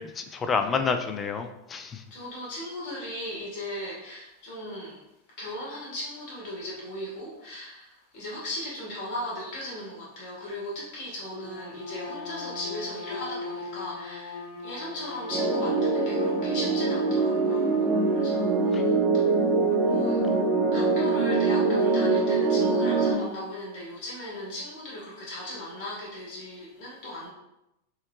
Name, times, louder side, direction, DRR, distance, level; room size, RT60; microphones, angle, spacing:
voice 1, 0.0-2.0 18.7-18.8, left 5 dB, 20° left, 8 dB, 0.4 m, -29 dB
voice 2, 2.1-5.0 5.4-17.7 18.1-19.2 19.8-20.2 20.7-27.3, left 1 dB, 45° left, -5 dB, 1.7 m, -37 dB
Bowed string instrument, 11.2-18.8, left 2 dB, 65° left, 1.5 m, -39 dB
sound 1, 15.3-23.2, right 3 dB, 25° right, 0.8 m, -23 dB
5.5 x 3.1 x 3.0 m, 0.89 s
figure-of-eight pair, 90°, 0 cm